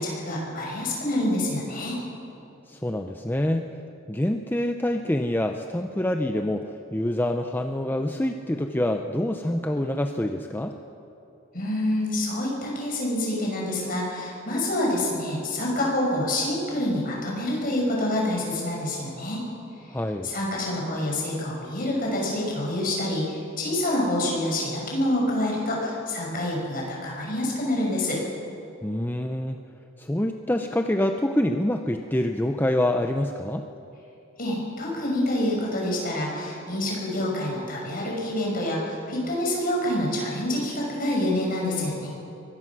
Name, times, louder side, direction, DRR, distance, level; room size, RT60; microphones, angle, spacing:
voice 1, 0.0-2.0 11.5-19.4 19.8-19.9 20.2-28.2 34.4-42.1, left 1 dB, 45° left, -2 dB, 6.3 m, -27 dB
voice 2, 2.7-3.7 4.1-10.8 19.9-20.3 28.8-29.6 30.0-33.7, left 1 dB, 10° left, 5 dB, 0.6 m, -26 dB
23.0 x 19.0 x 6.2 m, 2.8 s
head